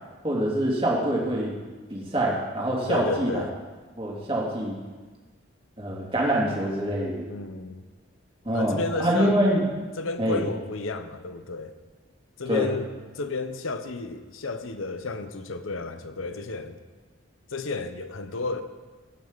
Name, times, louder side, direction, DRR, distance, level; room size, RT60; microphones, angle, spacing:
voice 1, 0.2-1.6 1.9-3.4 4.0-4.8 5.8-7.3 8.4-9.6 10.2-10.4 12.5-12.7, right 1 dB, 25° right, -3 dB, 2.7 m, -25 dB
voice 2, 2.9-3.5 7.3-7.8 8.5-9.4 10.0-11.7 12.4-16.8 17.5-18.6, left 3 dB, 85° left, 9 dB, 0.9 m, -32 dB
20.0 x 9.5 x 4.0 m, 1.3 s
head